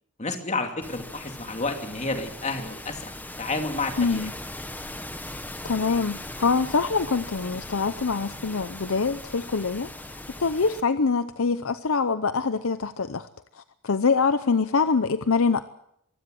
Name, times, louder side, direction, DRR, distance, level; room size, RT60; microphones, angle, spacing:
voice 1, 0.2-3.1 3.4-4.3, left 3 dB, 30° left, 5 dB, 2.6 m, -30 dB
sound 1, 0.8-10.8, left 1 dB, 10° left, 1.2 m, -39 dB
voice 2, 4.0-4.3 5.6-10.1 10.4-13.3 13.8-15.6, left 4 dB, 65° left, 12 dB, 0.7 m, -24 dB
23.5 x 15.5 x 7.8 m, 0.75 s
head